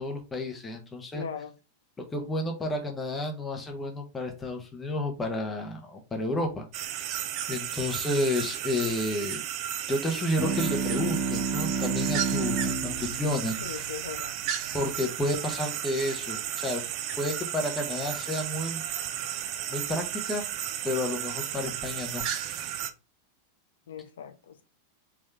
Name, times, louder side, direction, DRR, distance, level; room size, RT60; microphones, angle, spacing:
voice 1, 0.0-1.2 2.1-6.6 7.5-9.4 9.9-13.9 14.7-16.8 17.2-18.8 19.2-19.3 19.7-20.5 20.8-22.2, left 1 dB, 15° left, 0.9 m, -31 dB
voice 2, 1.1-1.5 13.6-14.3 23.9-24.6, left 8 dB, 65° left, 0.6 m, -39 dB
sound 1, 6.7-22.9, right 10 dB, 40° right, 0.4 m, -34 dB
sound 2, 10.4-15.2, right 4 dB, 5° right, 1.0 m, -32 dB
3.6 x 3.2 x 3.3 m
figure-of-eight pair, 90°, 0 cm